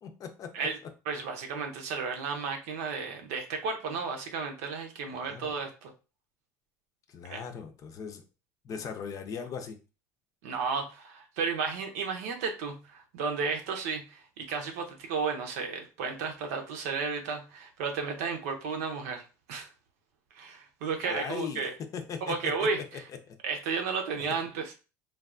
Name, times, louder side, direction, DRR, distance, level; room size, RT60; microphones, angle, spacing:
voice 1, 0.0-0.7 5.1-5.5 7.1-8.2 8.6-9.8 21.0-21.7 21.9-22.8 23.3-23.4 24.2-24.3, left 6 dB, 45° left, 6 dB, 0.6 m, -39 dB
voice 2, 1.1-5.9 7.3-7.4 10.4-19.7 20.3-21.7 22.2-23.0 23.4-24.7, right 5 dB, 85° right, 4 dB, 0.7 m, -33 dB
3.3 x 2.3 x 2.4 m, 0.32 s
supercardioid pair, 95°, 8 cm